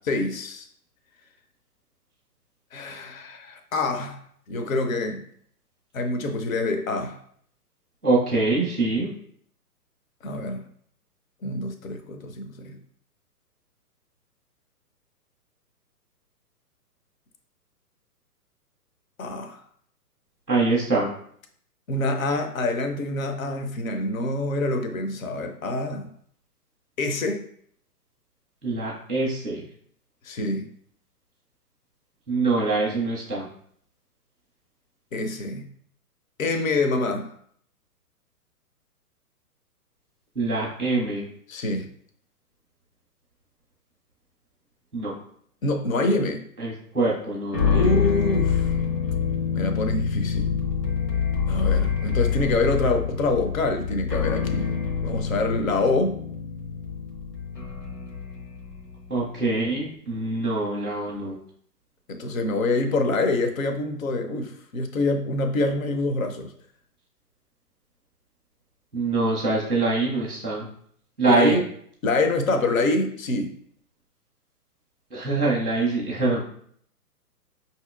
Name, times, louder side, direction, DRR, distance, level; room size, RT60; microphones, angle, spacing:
voice 1, 0.1-0.7 2.7-4.2 4.5-5.2 5.9-7.2 10.2-10.6 11.4-12.7 19.2-19.6 21.9-26.1 27.0-27.4 30.2-30.7 35.1-35.6 36.4-37.3 41.5-41.9 45.6-46.4 47.7-48.7 49.5-50.6 51.5-56.2 62.1-66.5 71.3-71.6 72.0-73.5, left 2 dB, 60° left, 6 dB, 0.7 m, -26 dB
voice 2, 8.0-9.1 20.5-21.1 28.6-29.6 32.3-33.5 40.3-41.2 44.9-45.1 46.6-48.0 59.1-61.4 68.9-70.7 71.2-71.6 75.1-76.4, right 3 dB, 5° left, -5 dB, 0.4 m, -24 dB
sound 1, 47.5-58.9, left 7 dB, 80° left, 1.1 m, -26 dB
5.6 x 2.8 x 2.3 m, 0.63 s
figure-of-eight pair, 125°, 48 cm